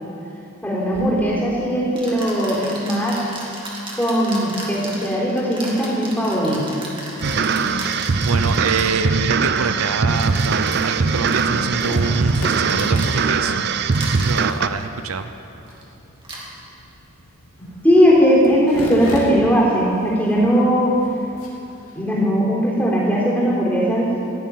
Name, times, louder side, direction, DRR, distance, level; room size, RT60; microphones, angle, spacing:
voice 1, 0.6-3.3 3.9-6.8 17.8-20.9 21.9-24.1, equal, 10° left, -6 dB, 3.7 m, -18 dB
sound 1, 0.9-1.1 2.0-9.1 10.1-13.5 13.9-14.6 15.6-15.8 16.2-16.5, right 2 dB, 25° right, 2.2 m, -35 dB
sound 2, 7.2-14.7, right 4 dB, 50° right, 0.5 m, -21 dB
voice 2, 8.3-13.7 14.0-15.3, right 4 dB, 85° right, 9 dB, 0.7 m, -25 dB
sound 3, 10.8-22.0, left 1 dB, 85° left, 3.1 m, -37 dB
16.0 x 7.6 x 9.3 m, 2.9 s
head